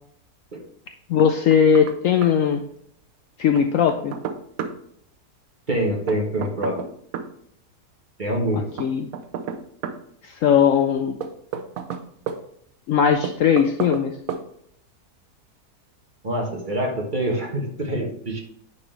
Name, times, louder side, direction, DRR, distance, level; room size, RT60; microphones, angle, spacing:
voice 1, 1.1-2.6 3.4-4.1 8.5-9.1 10.2-11.2 12.9-14.2, left 7 dB, 70° left, 6 dB, 0.8 m, -19 dB
Knock, 1.2-2.0 2.2-2.3 3.5-4.8 6.1-7.3 8.8-10.0 11.2-12.4 13.2-14.0 14.3-14.4, right 7 dB, 65° right, 1.0 m, -31 dB
voice 2, 5.7-6.8 8.2-8.7 16.2-18.4, right 1 dB, 30° right, 0 dB, 1.4 m, -25 dB
9.7 x 4.3 x 3.3 m, 0.69 s
omnidirectional pair, 1.7 m